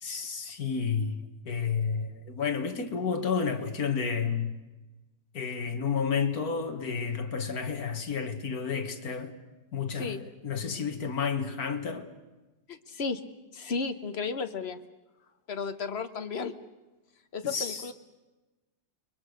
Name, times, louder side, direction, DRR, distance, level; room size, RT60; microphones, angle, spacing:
voice 1, 0.0-4.5 5.3-9.3 9.7-12.1 17.4-17.8, left 6 dB, 65° left, 2.1 m, -31 dB
voice 2, 12.7-13.2 13.5-14.8 15.5-16.5 17.3-17.9, left 4 dB, 45° left, 1.3 m, -33 dB
29.5 x 22.0 x 6.6 m
omnidirectional pair, 1.7 m